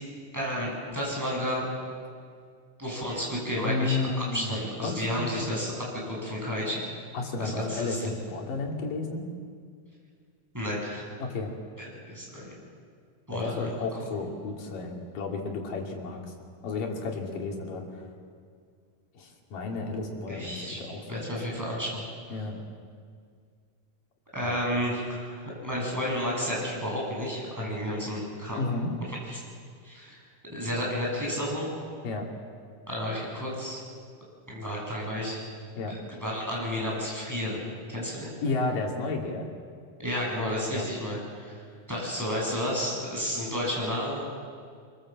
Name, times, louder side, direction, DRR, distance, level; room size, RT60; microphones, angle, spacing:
voice 1, 0.3-1.7 2.8-6.8 7.4-8.1 10.5-11.0 11.8-12.5 13.3-13.7 20.3-20.8 21.1-22.0 24.3-28.6 29.3-29.4 29.8-30.2 30.5-31.7 32.9-33.8 34.5-35.4 35.9-37.6 37.9-38.3 40.0-41.6 41.9-44.2, equal, 5° right, -4 dB, 7.8 m, -31 dB
voice 2, 3.6-5.5 7.1-9.3 11.2-11.5 13.3-16.3 16.6-18.1 19.1-21.0 22.3-22.6 24.4-24.6 28.6-28.9 32.0-32.3 35.8-36.0 38.4-39.5 40.7-40.8, left 3 dB, 90° left, 1 dB, 4.4 m, -32 dB
24.5 x 23.5 x 7.7 m, 2.1 s
omnidirectional pair, 3.7 m